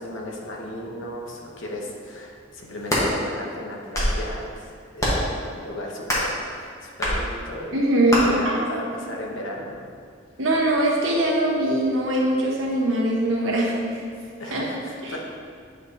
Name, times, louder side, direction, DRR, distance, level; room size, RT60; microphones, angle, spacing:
voice 1, 0.0-7.8 8.1-9.9 14.4-15.2, left 1 dB, 75° left, -1 dB, 1.0 m, -35 dB
sound 1, 2.6-3.1 3.7-4.2 5.0-5.3 6.0-6.4 7.0-7.2 8.1-8.2, equal, 15° left, 1.3 m, -23 dB
voice 2, 7.7-8.6 10.4-14.0 14.5-14.6, right 1 dB, 75° right, -3 dB, 1.3 m, -22 dB
8.7 x 5.2 x 2.8 m, 2.2 s
head